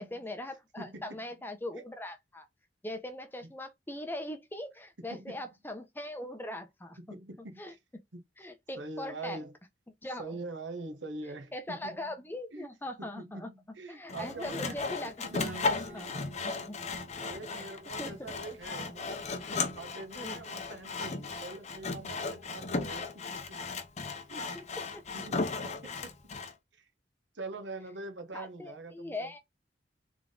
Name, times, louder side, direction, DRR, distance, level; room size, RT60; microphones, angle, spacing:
voice 1, 0.0-2.5 2.8-7.0 7.6-7.7 8.4-9.4 10.0-10.4 11.5-13.5 13.9-15.1 15.7-16.1 16.4-16.8 17.5-17.6 18.0-18.6 20.2-20.4 24.5-24.6 24.9-25.0 28.3-29.4, left 1 dB, 10° left, 0.7 m, -40 dB
voice 2, 0.8-1.2 5.0-5.5 7.0-7.8 8.1-8.2 8.8-9.5 10.2-12.0 12.5-12.7 13.0-14.8 15.2-15.5 15.9-16.1 16.5-16.7 17.2-23.6 24.1-24.6 25.1-25.9 26.7-26.9 27.3-29.3, right 2 dB, 85° right, 1.2 m, -44 dB
Sawing, 14.1-26.5, left 4 dB, 40° left, 0.7 m, -36 dB
Guitar, 15.3-19.1, right 2 dB, 45° right, 1.5 m, -48 dB
3.6 x 3.6 x 3.7 m
head